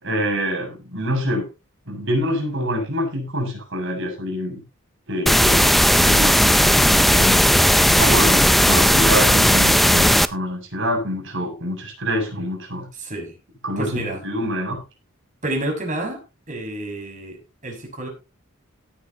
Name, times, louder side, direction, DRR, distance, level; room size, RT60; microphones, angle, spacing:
voice 1, 0.0-1.5 1.9-4.6 5.1-7.6 7.9-12.9 13.6-14.8, equal, 60° right, 1 dB, 6.9 m, -26 dB
sound 1, 5.3-10.3, equal, ahead, 0.5 m, -15 dB
voice 2, 12.9-13.3 13.8-14.2 15.4-16.2 16.5-18.1, right 1 dB, 40° right, 2 dB, 6.3 m, -29 dB
17.0 x 10.0 x 3.0 m, 0.28 s
head